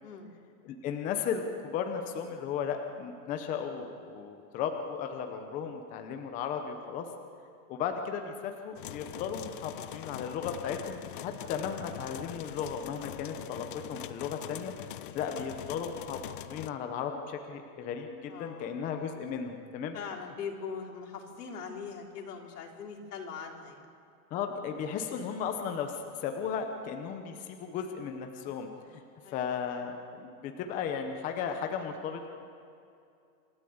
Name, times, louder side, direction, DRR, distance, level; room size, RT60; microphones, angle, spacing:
voice 1, 0.0-0.3 18.3-18.8 19.9-23.9 29.2-29.5, left 6 dB, 80° left, 1 dB, 3.8 m, -41 dB
voice 2, 0.6-7.1 7.7-14.7 15.1-19.9 24.3-29.0 29.3-32.3, left 7 dB, 15° left, 5 dB, 0.8 m, -35 dB
sound 1, 8.8-16.7, left 12 dB, 40° left, 0.4 m, -43 dB
27.5 x 13.0 x 8.0 m, 2.5 s
supercardioid pair, 165°, 46 cm